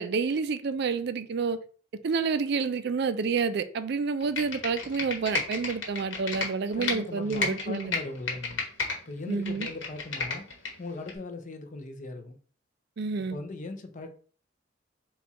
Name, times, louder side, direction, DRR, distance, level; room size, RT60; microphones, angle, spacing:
voice 1, 0.0-1.6 2.0-7.9 9.3-9.7 13.0-13.4, right 5 dB, 60° right, 0.4 m, -29 dB
Computer keyboard, 4.2-7.0 7.3-9.0 9.3-10.7 11.1-11.2, left 4 dB, 85° left, 1.2 m, -31 dB
voice 2, 6.7-8.6 9.1-10.5 10.8-12.4 13.3-14.1, left 2 dB, 40° left, 0.6 m, -38 dB
4.3 x 2.4 x 4.1 m
head